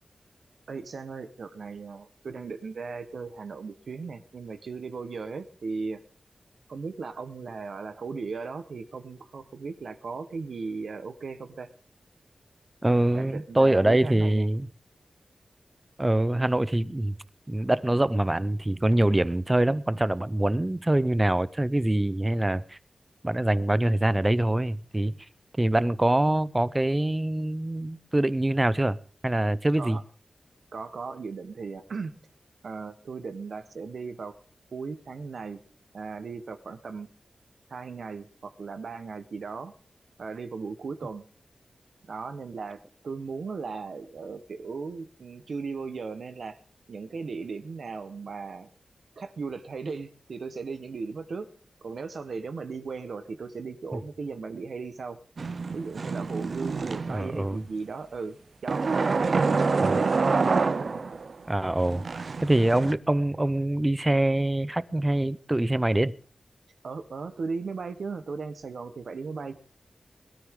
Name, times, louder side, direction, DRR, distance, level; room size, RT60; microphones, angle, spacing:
voice 1, 0.7-6.0 6.7-11.7 13.1-14.5 29.8-30.0 30.7-32.1 32.6-34.4 34.7-35.6 35.9-37.1 37.7-39.7 40.2-41.3 42.1-46.6 46.9-48.7 49.2-51.5 51.8-55.2 55.7-60.2 60.9-61.1 66.8-69.5, right 4 dB, 80° right, 1.2 m, -37 dB
voice 2, 12.8-14.7 16.0-17.2 17.5-22.8 23.2-25.1 25.6-29.0 29.2-30.0 57.1-57.6 59.8-59.9 61.5-66.1, right 1 dB, 15° right, 0.6 m, -24 dB
sound 1, 55.4-57.4 58.7-61.3 61.8-62.9, right 4 dB, 60° right, 0.6 m, -27 dB
21.0 x 13.0 x 3.8 m
wide cardioid pair, 130°, 0 cm